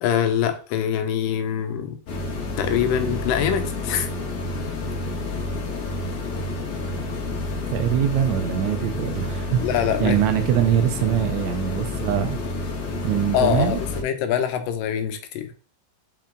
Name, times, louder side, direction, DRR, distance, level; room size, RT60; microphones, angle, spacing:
voice 1, 0.0-2.0 2.6-4.1 9.6-10.2 13.3-15.5, left 9 dB, 80° left, 8 dB, 2.5 m, -24 dB
sound 1, 2.1-14.0, left 2 dB, 50° left, 2.0 m, -29 dB
voice 2, 7.7-9.7 10.0-12.4 13.0-13.8, right 10 dB, 75° right, 7 dB, 1.8 m, -23 dB
5.9 x 5.5 x 3.8 m, 0.39 s
omnidirectional pair, 3.9 m